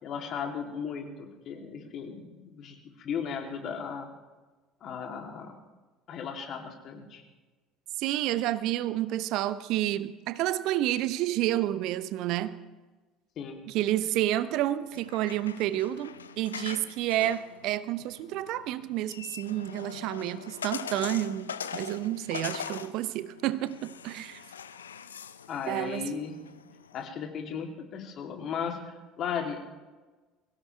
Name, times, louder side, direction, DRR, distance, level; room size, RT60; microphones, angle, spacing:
voice 1, 0.0-4.1 4.8-5.6 6.1-7.2 13.4-13.7 25.5-26.3 26.9-29.7, left 7 dB, 50° left, 2 dB, 3.0 m, -36 dB
voice 2, 8.0-12.6 13.7-24.4 25.7-26.1, right 14 dB, 55° right, 14 dB, 0.7 m, -30 dB
sound 1, 14.8-27.1, left 7 dB, 80° left, 0.6 m, -42 dB
23.5 x 17.0 x 3.4 m, 1.2 s
figure-of-eight pair, 60°, 0 cm